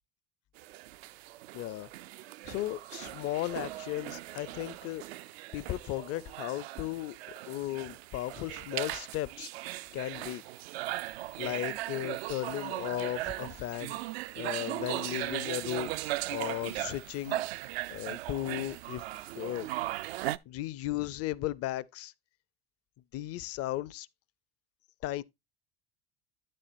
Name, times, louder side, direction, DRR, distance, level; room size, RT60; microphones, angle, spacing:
sound 1, 0.6-20.4, right 16 dB, 80° right, 0.5 m, -38 dB
voice 1, 1.5-1.9 2.5-5.0 5.5-7.2 7.5-9.5 9.9-10.4 11.4-14.0 14.4-16.0 16.3-17.4 17.9-19.0 19.3-19.7 20.5-22.1 23.1-24.1 25.0-25.2, left 15 dB, 50° left, 0.6 m, -35 dB
9.8 x 7.6 x 2.6 m
hypercardioid pair, 80°, 30 cm